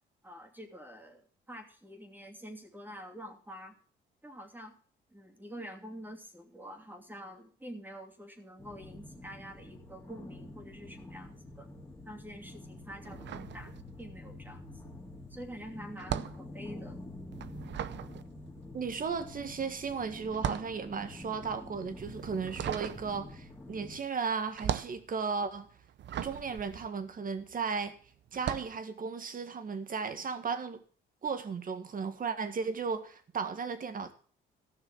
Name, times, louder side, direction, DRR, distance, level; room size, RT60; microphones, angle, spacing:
voice 1, 0.2-3.8 4.2-4.8 5.1-11.7 12.0-14.9 15.3-17.0, equal, 10° right, 2.8 m, -47 dB
sound 1, 8.6-24.0, left 2 dB, 10° left, 2.8 m, -47 dB
sound 2, 13.0-14.3 14.5-27.7 28.3-28.8, right 10 dB, 65° right, 0.8 m, -39 dB
voice 2, 18.7-25.7 26.2-28.0 28.3-30.8 31.2-34.1, right 5 dB, 45° right, 1.9 m, -35 dB
14.5 x 6.3 x 7.3 m
cardioid pair, 90°, 20 cm